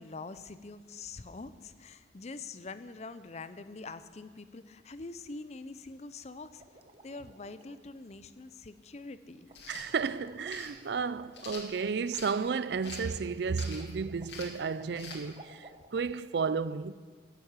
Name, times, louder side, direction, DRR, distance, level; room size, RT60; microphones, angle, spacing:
voice 1, 0.0-6.6 7.0-9.5, left 3 dB, 35° left, 0.5 m, -44 dB
sound 1, 6.6-7.8 9.5-9.6 9.9-16.1, right 2 dB, 30° right, 1.0 m, -56 dB
sound 2, 9.5-9.9 10.5-10.7 11.3-12.3 12.8-13.1 13.5-13.9 14.2-14.6 14.9-15.2, left 4 dB, 65° left, 2.3 m, -45 dB
voice 2, 9.7-16.9, right 5 dB, 65° right, 0.4 m, -33 dB
12.5 x 10.5 x 7.3 m
head